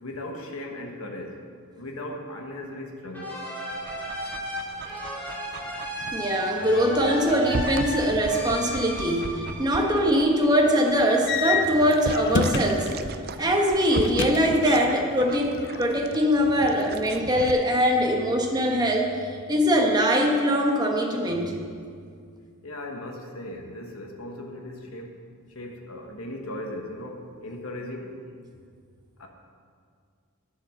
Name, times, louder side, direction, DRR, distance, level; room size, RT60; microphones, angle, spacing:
voice 1, 0.0-1.4 1.7-3.4 5.9-6.1 22.6-25.1 25.5-28.2 29.2-29.3, left 1 dB, 70° left, 2 dB, 1.3 m, -37 dB
sound 1, 3.1-10.6, left 1 dB, 10° left, 3.2 m, -35 dB
Dog, 3.7-17.5, right 4 dB, 45° right, 0.5 m, -38 dB
voice 2, 6.1-12.9 13.4-21.5, equal, 20° right, 1 dB, 1.2 m, -22 dB
sound 2, 11.3-13.0 14.0-15.1 15.3-16.2, left 4 dB, 55° left, 0.6 m, -28 dB
10.0 x 8.3 x 6.5 m, 2.2 s
head